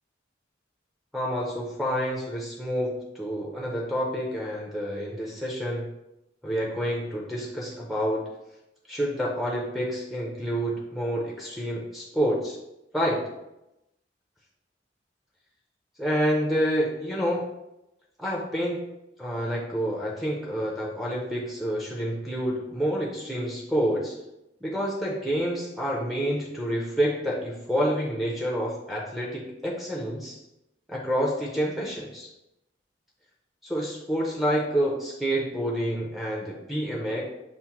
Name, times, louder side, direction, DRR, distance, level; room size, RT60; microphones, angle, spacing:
voice 1, 1.1-5.9 6.4-8.3 8.9-12.6 12.9-13.2 16.0-17.5 18.2-18.9 19.2-24.2 24.6-30.4 30.9-32.3 33.6-37.2, equal, ahead, -4 dB, 0.5 m, -28 dB
5.7 x 2.1 x 2.9 m, 0.89 s
head